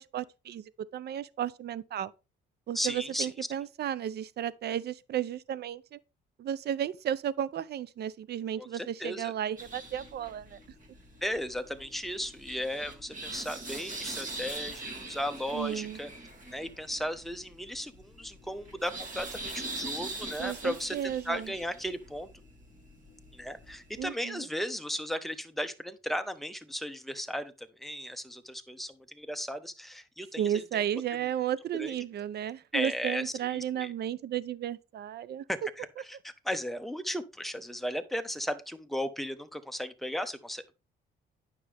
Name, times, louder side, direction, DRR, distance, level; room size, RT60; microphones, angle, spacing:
voice 1, 0.0-2.1 2.7-6.0 6.4-10.6 15.5-16.0 20.4-21.5 24.0-24.5 30.4-35.4, right 10 dB, 55° right, 0.6 m, -33 dB
voice 2, 2.7-3.3 8.6-9.3 11.2-16.1 16.5-21.0 21.2-22.3 23.3-30.8 31.8-31.9 32.7-33.9 35.5-40.7, equal, ahead, 1.0 m, -36 dB
sound 1, 9.6-24.1, right 2 dB, 40° right, 2.6 m, -43 dB
9.6 x 6.3 x 3.4 m
cardioid pair, 90°, 20 cm